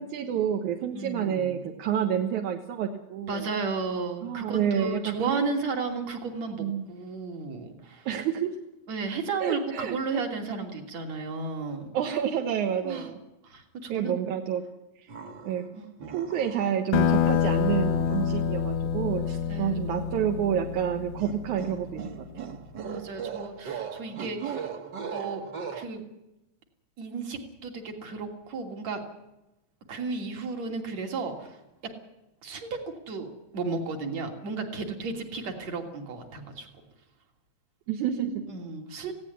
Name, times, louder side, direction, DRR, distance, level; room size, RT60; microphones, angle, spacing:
voice 1, 0.0-3.5 4.2-5.4 6.6-6.9 8.1-8.5 9.4-10.2 11.9-13.2 13.9-14.6 15.0-15.1 15.4-15.7 16.1-22.3 37.9-38.5, right 9 dB, 80° right, 4 dB, 2.8 m, -29 dB
voice 2, 0.9-1.7 3.3-8.1 8.9-11.9 12.8-13.1 13.4-14.1 15.7-16.1 19.5-20.0 22.8-24.7 25.1-25.4 25.7-26.0 27.0-29.0 29.9-31.6 32.4-32.8 33.1-36.7 38.5-39.1, right 4 dB, 60° right, 3 dB, 4.0 m, -33 dB
sound 1, 15.1-15.7 16.0-16.8 17.2-18.4 21.2-25.8, right 7 dB, 45° right, 1.6 m, -39 dB
sound 2, 16.9-22.1, left 8 dB, 70° left, 1.3 m, -27 dB
18.5 x 16.5 x 9.8 m, 0.94 s
omnidirectional pair, 3.4 m